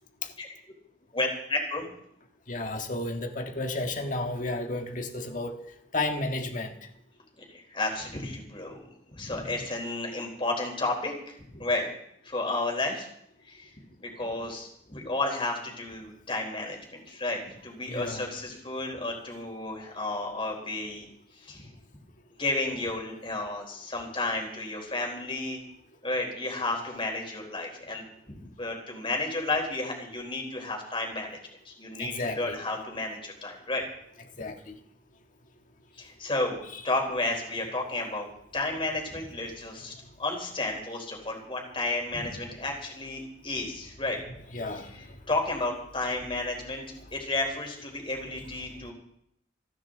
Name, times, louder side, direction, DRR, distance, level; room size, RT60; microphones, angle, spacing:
voice 1, 1.1-1.8 7.5-8.8 9.1-11.9 12.2-13.1 13.5-13.7 14.0-21.1 21.4-21.7 22.4-25.6 26.0-31.4 31.6-33.8 35.9-38.3 38.5-44.2 44.9-46.8 47.1-48.9, left 2 dB, 30° left, 1 dB, 4.1 m, -32 dB
voice 2, 2.5-5.5 5.9-6.8 17.9-18.2 32.2-32.6 34.4-34.7 44.5-44.9, left 2 dB, 45° left, 4 dB, 1.7 m, -32 dB
29.0 x 10.5 x 3.9 m, 0.75 s
head